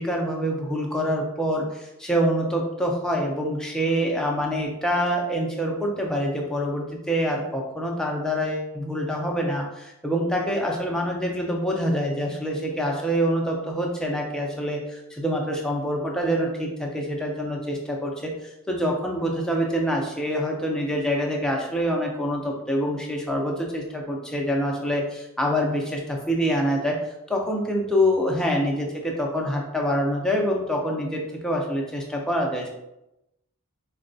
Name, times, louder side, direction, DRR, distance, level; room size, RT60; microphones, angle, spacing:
voice 1, 0.0-27.0 27.3-32.7, equal, 5° left, -1 dB, 0.4 m, -26 dB
3.9 x 2.2 x 2.6 m, 0.90 s
head